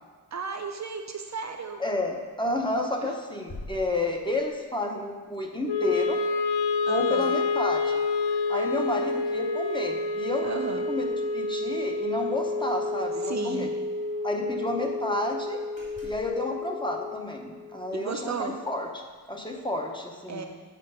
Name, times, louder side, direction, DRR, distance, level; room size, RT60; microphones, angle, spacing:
voice 1, 0.3-1.8 3.0-3.1 6.9-7.3 10.4-10.8 13.2-13.7 17.9-18.6 20.3-20.5, right 5 dB, 45° right, 5 dB, 0.5 m, -34 dB
sound 1, 1.5-2.2 2.7-2.9 3.5-4.6 7.2-7.3 7.7-8.7 9.1-11.0 11.3-11.4 11.7-11.9 13.0-13.1 13.3-13.4 13.9-14.8 15.2-15.4 15.8-16.4, left 1 dB, 30° left, 2.4 m, -49 dB
voice 2, 1.8-6.2 6.9-8.0 8.5-13.7 14.2-15.6 16.0-20.5, left 1 dB, 10° left, 1 dB, 0.7 m, -31 dB
Wind instrument woodwind instrument, 5.7-17.9, left 3 dB, 85° left, 0.6 m, -29 dB
7.5 x 4.4 x 6.7 m, 1.5 s
wide cardioid pair, 155°, 39 cm